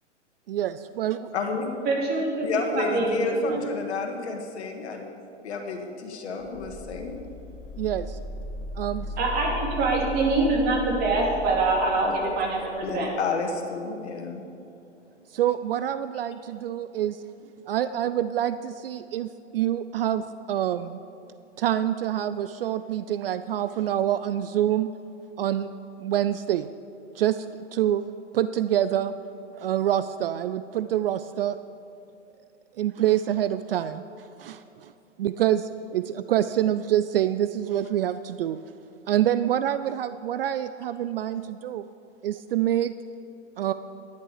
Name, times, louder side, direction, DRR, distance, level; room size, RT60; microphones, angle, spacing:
voice 1, 0.5-1.3 7.8-8.2 8.8-9.1 15.3-17.2 17.7-21.0 21.6-24.9 25.4-25.7 26.0-26.7 27.2-27.5 27.7-28.0 28.3-29.1 29.6-31.6 32.8-34.0 34.4-34.9 35.2-38.6 39.1-41.8 42.2-42.9 43.6-43.7, right 11 dB, 55° right, 13 dB, 0.4 m, -26 dB
voice 2, 1.3-1.7 2.4-5.1 5.4-7.2 12.0-12.2 12.8-14.4, left 4 dB, 65° left, 4 dB, 1.9 m, -30 dB
voice 3, 1.9-2.5 2.7-3.6 9.2-12.6 12.9-13.1, right 2 dB, 25° right, -1 dB, 2.5 m, -24 dB
sound 1, 6.4-13.1, left 1 dB, 15° left, 0.8 m, -37 dB
12.0 x 10.5 x 5.0 m, 2.7 s
hypercardioid pair, 120°, 36 cm